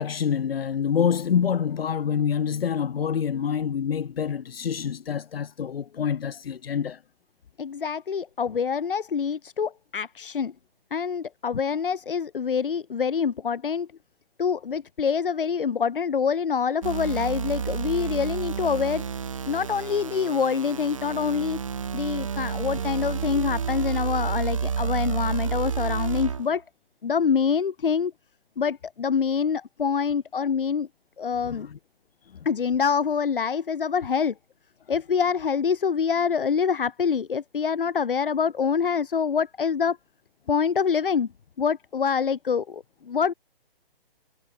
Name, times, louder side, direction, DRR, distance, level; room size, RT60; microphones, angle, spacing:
voice 1, 0.0-7.0 31.5-31.7, left 7 dB, 80° left, 0.8 m, -26 dB
voice 2, 7.6-10.5 10.9-13.9 14.4-19.0 19.5-21.6 21.9-26.6 27.0-28.1 28.6-30.9 31.2-31.7 32.5-34.3 34.9-40.0 40.5-41.3 41.6-43.3, left 6 dB, 65° left, 2.0 m, -25 dB
sound 1, 16.8-26.5, right 6 dB, 35° right, 0.6 m, -30 dB
hypercardioid pair, 175°, 29 cm